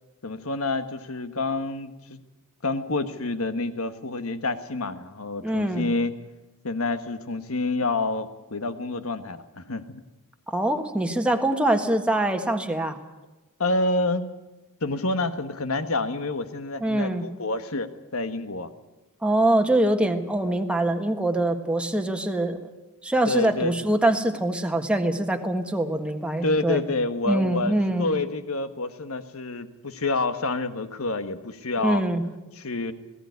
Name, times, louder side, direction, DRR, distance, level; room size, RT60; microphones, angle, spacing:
voice 1, 0.2-2.2 2.6-6.2 6.6-10.0 13.6-14.3 14.8-18.7 23.3-23.7 26.4-32.0 32.6-32.9, left 2 dB, 70° left, 10 dB, 1.5 m, -28 dB
voice 2, 5.4-5.9 10.5-13.0 16.8-17.3 19.2-22.6 23.0-26.8 27.3-28.1 31.8-32.2, right 1 dB, 5° right, 4 dB, 1.5 m, -24 dB
19.5 x 16.5 x 9.6 m, 1.1 s
head